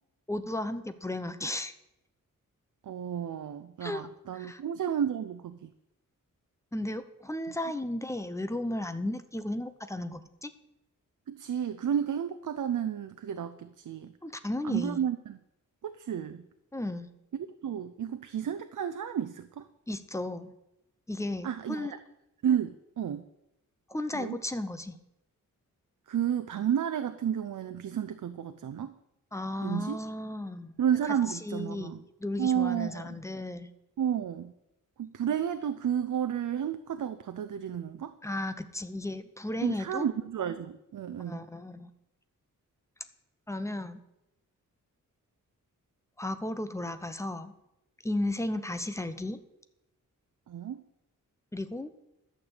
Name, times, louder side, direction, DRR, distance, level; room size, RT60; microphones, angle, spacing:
voice 1, 0.3-1.7 3.8-4.1 4.3-4.6 6.7-10.5 14.2-15.0 16.7-17.1 19.9-20.5 21.1-21.9 23.9-25.0 29.3-30.7 31.1-33.7 38.2-40.1 41.3-41.9 43.5-44.0 46.2-47.6 48.0-49.4 51.5-51.9, left 1 dB, 10° left, 10 dB, 0.7 m, -34 dB
voice 2, 2.8-5.7 11.3-14.1 14.6-15.4 15.8-16.4 17.3-19.7 21.4-21.9 22.4-23.2 24.1-24.4 26.1-28.9 29.6-30.0 30.8-32.0 32.4-33.2 34.0-34.5 35.0-38.1 39.6-41.4 50.5-50.8, right 9 dB, 70° right, 10 dB, 0.6 m, -31 dB
12.0 x 6.8 x 8.0 m, 0.87 s
wide cardioid pair, 165°, 32 cm